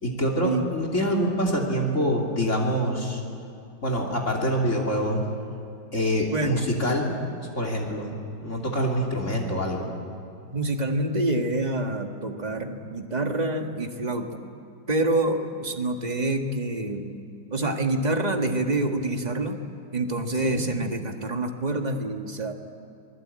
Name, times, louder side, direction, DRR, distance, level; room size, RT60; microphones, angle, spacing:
voice 1, 0.0-3.2 3.8-5.2 5.9-7.1 7.4-9.9 20.5-20.6, equal, 40° left, 1 dB, 3.4 m, -25 dB
voice 2, 6.3-6.7 10.5-14.4 14.9-17.1 17.5-19.6 19.9-22.5, right 2 dB, 25° right, 4 dB, 1.7 m, -27 dB
26.0 x 21.0 x 8.8 m, 2.8 s
omnidirectional pair, 1.9 m